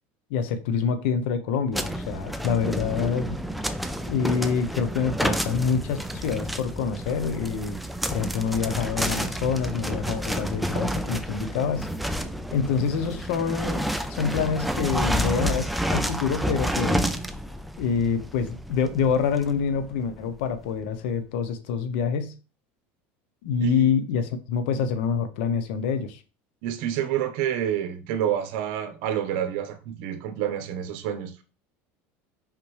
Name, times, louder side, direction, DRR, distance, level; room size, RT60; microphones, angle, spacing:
voice 1, 0.3-3.4 4.1-7.8 8.1-11.9 12.5-13.8 14.1-17.0 17.8-22.3 23.4-26.2, left 6 dB, 75° left, 1.0 m, -26 dB
Oskar Eisbrecher, 1.7-20.5, equal, ahead, 0.5 m, -30 dB
voice 2, 26.6-31.4, right 10 dB, 70° right, 1.2 m, -28 dB
5.7 x 5.1 x 3.3 m
supercardioid pair, 140°, 6 cm